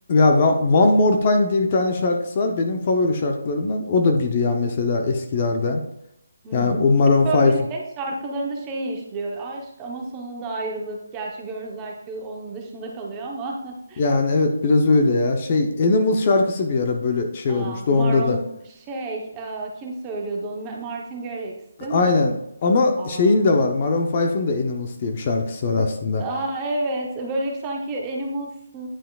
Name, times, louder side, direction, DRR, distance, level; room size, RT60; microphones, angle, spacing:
voice 1, 0.1-5.8 6.5-7.5 14.0-18.4 21.9-22.3 22.6-26.2, left 3 dB, 25° left, 4 dB, 0.6 m, -20 dB
voice 2, 6.4-14.1 17.5-21.5 21.8-22.2 23.0-23.4 26.2-28.9, right 2 dB, 10° right, 0 dB, 0.8 m, -31 dB
9.8 x 5.6 x 2.3 m, 0.78 s
hypercardioid pair, 175°, 0 cm